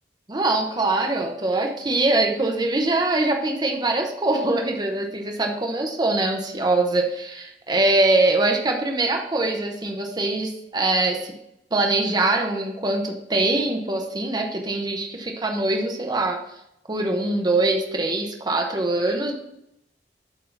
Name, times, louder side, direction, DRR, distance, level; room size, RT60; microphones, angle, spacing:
voice 1, 0.3-11.3 11.7-16.4 16.9-19.3, right 2 dB, 25° right, 2 dB, 0.8 m, -23 dB
8.1 x 3.7 x 5.7 m, 0.80 s
head